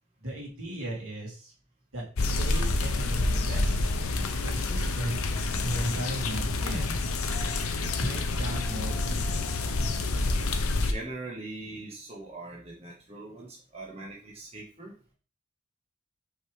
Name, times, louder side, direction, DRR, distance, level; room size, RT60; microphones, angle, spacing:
voice 1, 0.2-1.5 1.9-3.9 4.4-5.2 5.6-7.0 8.0-9.5, right 1 dB, 75° right, -3 dB, 2.8 m, -36 dB
sound 1, 2.2-10.9, left 2 dB, 80° left, 0.7 m, -28 dB
Wind, 2.7-10.3, left 1 dB, 30° left, 2.0 m, -52 dB
voice 2, 10.8-14.9, right 2 dB, 30° right, -3 dB, 1.2 m, -41 dB
5.7 x 5.6 x 3.2 m, 0.38 s
head